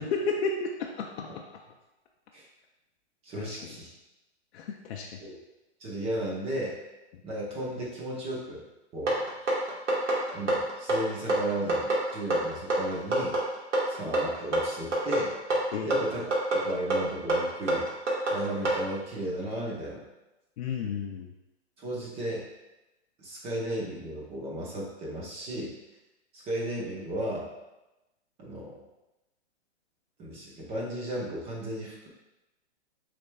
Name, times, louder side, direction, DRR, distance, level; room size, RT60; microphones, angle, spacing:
voice 1, 0.0-1.4 3.4-3.7 4.5-5.2 15.7-15.9 20.6-21.3, left 4 dB, 60° left, 0 dB, 0.6 m, -32 dB
voice 2, 3.2-3.9 5.2-5.4 5.8-6.8 7.2-8.6 8.9-9.2 10.3-13.4 13.9-15.4 15.8-16.2 16.5-17.9 18.3-20.0 21.8-22.5 23.2-25.7 26.3-27.5 28.4-28.8 30.2-32.1, right 1 dB, 15° right, -3 dB, 0.7 m, -34 dB
sound 1, 9.1-18.8, right 2 dB, 85° right, 1.5 m, -26 dB
6.3 x 3.4 x 2.3 m, 1.0 s
hypercardioid pair, 150°, 35 cm